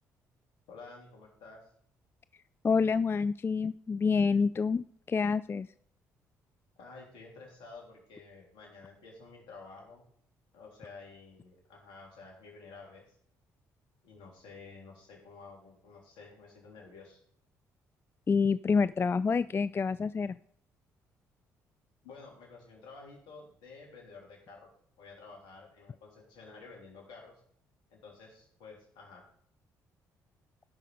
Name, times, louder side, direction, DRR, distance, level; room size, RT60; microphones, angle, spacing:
voice 1, 0.7-1.7 6.8-10.0 10.5-13.2 14.0-17.2 22.0-24.7 25.0-27.4 27.9-29.2, left 4 dB, 70° left, 0 dB, 3.4 m, -51 dB
voice 2, 2.6-5.7 18.3-20.4, left 5 dB, 30° left, 16 dB, 0.3 m, -27 dB
15.0 x 5.8 x 5.1 m, 0.64 s
hypercardioid pair, 50°, 8 cm